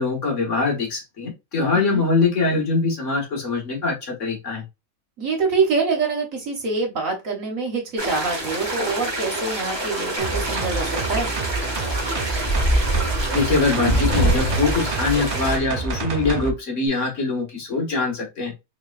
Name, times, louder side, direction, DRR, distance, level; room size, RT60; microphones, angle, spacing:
voice 1, 0.0-4.6 13.3-18.5, left 3 dB, 60° left, 0 dB, 1.7 m, -23 dB
voice 2, 1.7-2.0 5.2-11.3, right 4 dB, 70° right, 1 dB, 1.6 m, -25 dB
sound 1, 8.0-15.6, right 1 dB, 20° right, 0.9 m, -28 dB
sound 2, 10.2-16.5 16.9-17.0, right 3 dB, 50° right, 0.5 m, -28 dB
sound 3, 11.7-15.2, right 1 dB, 35° left, 1.1 m, -23 dB
3.7 x 3.2 x 2.4 m, 0.24 s
omnidirectional pair, 1.4 m